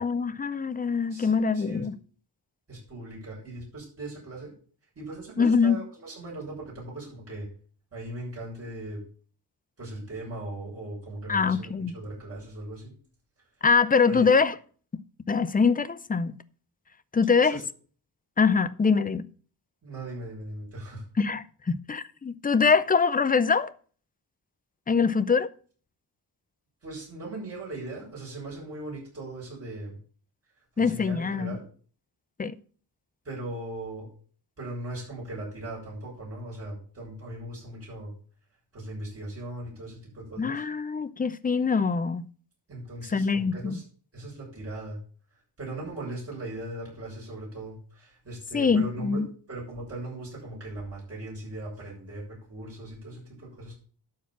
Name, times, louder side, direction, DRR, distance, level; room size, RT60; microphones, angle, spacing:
voice 1, 0.0-2.0 5.4-5.8 11.3-12.0 13.6-14.5 14.9-15.0 15.3-16.4 17.1-17.6 18.4-19.3 21.2-23.7 24.9-25.5 30.8-31.6 32.4-32.5 40.4-42.3 43.1-43.8 48.5-49.3, left 5 dB, 20° left, 0.4 m, -24 dB
voice 2, 1.1-1.9 2.7-4.5 4.9-7.5 7.9-9.0 9.8-12.9 14.1-14.3 17.3-17.6 19.8-21.0 24.9-25.1 26.8-30.0 30.8-31.6 33.2-34.1 34.6-38.1 38.7-40.6 42.7-43.8 44.1-45.0 45.6-53.7, right 2 dB, 35° right, 6.7 m, -39 dB
12.0 x 4.7 x 7.0 m
wide cardioid pair, 170°, 42 cm